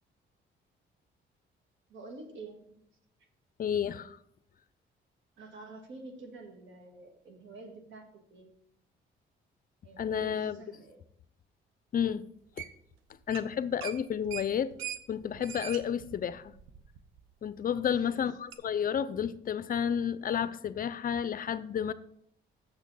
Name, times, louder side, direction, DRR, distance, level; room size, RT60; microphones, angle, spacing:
voice 1, 1.9-2.8 5.4-8.5 9.8-11.0 12.0-12.2 17.9-18.3, right 3 dB, 75° right, 1.8 m, -48 dB
voice 2, 3.6-4.2 10.0-10.6 11.9-12.2 13.3-14.7 15.1-16.5 17.4-21.9, left 8 dB, 45° left, 0.5 m, -31 dB
sound 1, 12.6-13.0 13.2-13.5 13.8-17.2 17.6-17.7 18.5-18.6, right 10 dB, 90° right, 0.7 m, -42 dB
6.8 x 6.2 x 5.5 m
cardioid pair, 90°, 20 cm